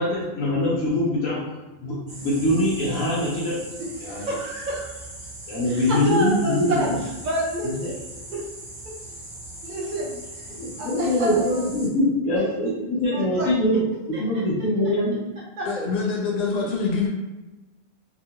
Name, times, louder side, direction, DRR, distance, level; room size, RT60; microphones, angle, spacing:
voice 1, 0.0-1.4 1.8-3.5 4.0-4.3 5.5-6.9 7.8-7.9 10.5-13.8 14.1-15.2, left 1 dB, 85° left, -8 dB, 1.1 m, -23 dB
sound 1, 2.1-11.9, right 1 dB, 40° right, 0.8 m, -40 dB
voice 2, 4.0-4.9 5.7-6.9 7.2-8.0 8.3-8.4 8.8-8.9 9.6-10.1 10.8-11.6 13.1-13.5 14.1-14.4 15.6-15.7, right 1 dB, 65° right, -5 dB, 0.4 m, -29 dB
voice 3, 15.6-17.1, left 4 dB, 50° left, -2 dB, 0.4 m, -25 dB
2.9 x 2.4 x 2.7 m, 1.1 s
omnidirectional pair, 1.4 m